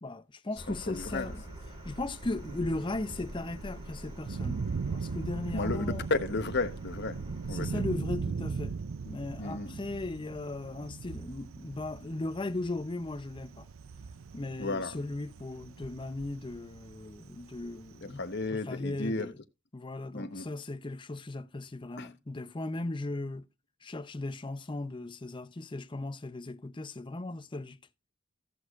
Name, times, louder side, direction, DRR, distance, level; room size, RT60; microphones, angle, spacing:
voice 1, 0.0-1.4 1.8-4.6 4.9-6.1 7.5-8.8 9.0-13.7 14.3-18.2 18.5-19.4 19.7-23.5 23.8-27.8, left 2 dB, 25° left, 0.6 m, -37 dB
sound 1, 0.6-8.0, equal, 20° right, 4.4 m, -46 dB
voice 2, 0.7-1.3 5.5-5.8 6.1-7.2 7.5-7.8 9.4-9.8 14.6-15.0 18.0-19.3 20.1-20.5 22.0-22.1, left 3 dB, 55° left, 1.1 m, -33 dB
Thunder, 1.0-18.5, right 5 dB, 85° right, 0.5 m, -40 dB
16.5 x 6.4 x 2.4 m
head